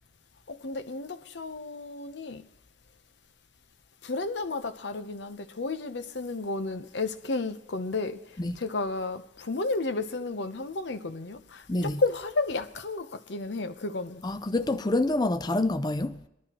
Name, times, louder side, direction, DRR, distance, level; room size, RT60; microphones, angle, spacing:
voice 1, 0.5-2.4 4.0-14.2, left 3 dB, 85° left, 0.8 m, -32 dB
voice 2, 11.7-12.0 14.2-16.2, left 2 dB, 25° left, 0.5 m, -27 dB
24.0 x 12.0 x 3.0 m
head